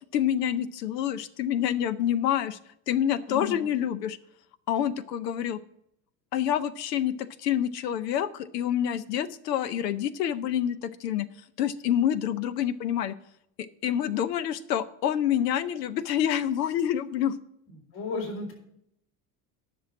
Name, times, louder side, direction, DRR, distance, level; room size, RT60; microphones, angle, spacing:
voice 1, 0.1-2.6 2.9-4.2 4.7-5.6 6.3-11.3 11.6-13.2 13.6-17.4, left 10 dB, 90° left, 13 dB, 0.7 m, -27 dB
voice 2, 3.3-3.6 17.9-18.5, left 4 dB, 70° left, 0 dB, 4.2 m, -33 dB
10.5 x 6.1 x 6.9 m, 0.73 s
hypercardioid pair, 70°, 47 cm